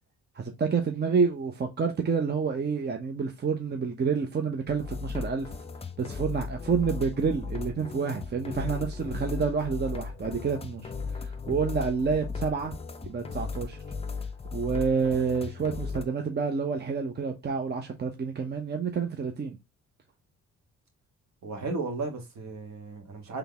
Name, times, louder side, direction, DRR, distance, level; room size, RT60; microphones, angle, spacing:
voice 1, 0.4-5.5 6.0-12.7 13.0-13.8 14.5-19.6, right 5 dB, 35° right, 0.9 m, -28 dB
sound 1, 4.7-16.0, left 4 dB, 20° left, 0.7 m, -36 dB
voice 2, 21.4-23.4, right 3 dB, 65° right, 1.8 m, -34 dB
4.0 x 3.4 x 3.5 m
cardioid pair, 90°, 30 cm